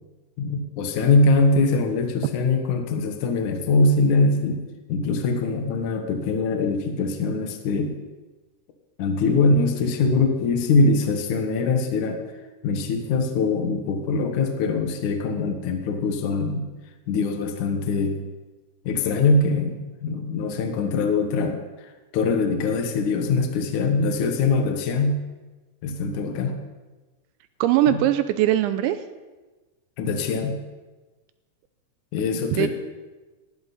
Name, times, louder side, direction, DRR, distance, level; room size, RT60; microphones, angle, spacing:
voice 1, 0.4-4.6 4.9-7.9 9.0-12.2 12.6-16.7 17.1-18.2 18.9-25.2 25.8-26.6 30.0-30.6 32.1-32.7, left 3 dB, 65° left, 4 dB, 1.9 m, -22 dB
voice 2, 27.6-29.0 32.5-32.7, right 13 dB, 85° right, 11 dB, 2.9 m, -20 dB
19.5 x 16.5 x 4.1 m, 1.2 s
omnidirectional pair, 5.4 m